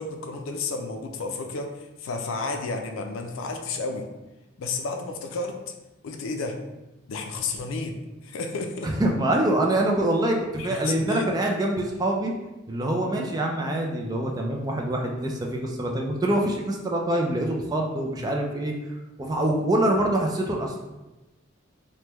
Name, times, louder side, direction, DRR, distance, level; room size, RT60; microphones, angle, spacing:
voice 1, 0.0-4.1 4.6-5.6 6.0-6.6 7.1-8.9 10.6-11.3, left 3 dB, 85° left, 4 dB, 0.4 m, -32 dB
voice 2, 8.8-12.3 12.7-18.7 19.2-20.8, right 1 dB, 20° right, 0 dB, 0.3 m, -25 dB
3.3 x 2.1 x 2.9 m, 1.0 s
head